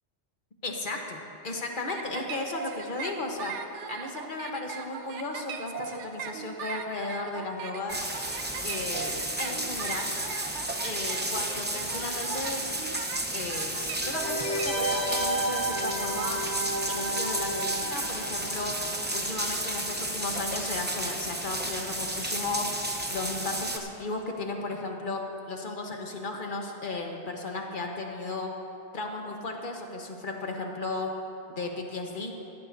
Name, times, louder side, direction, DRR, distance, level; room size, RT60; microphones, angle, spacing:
voice 1, 0.6-8.1 8.6-10.1 10.8-12.8 13.3-16.4 16.9-18.8 19.1-28.5 28.9-31.1 31.6-32.3, left 2 dB, 50° left, 2 dB, 1.3 m, -35 dB
sound 1, 1.9-14.7, right 7 dB, 90° right, 1.0 m, -39 dB
sound 2, 7.9-23.8, right 1 dB, 10° right, 0.7 m, -32 dB
sound 3, 14.0-19.5 19.7-19.8, right 1 dB, 80° left, 1.5 m, -32 dB
17.5 x 13.5 x 2.7 m, 2.8 s
omnidirectional pair, 1.1 m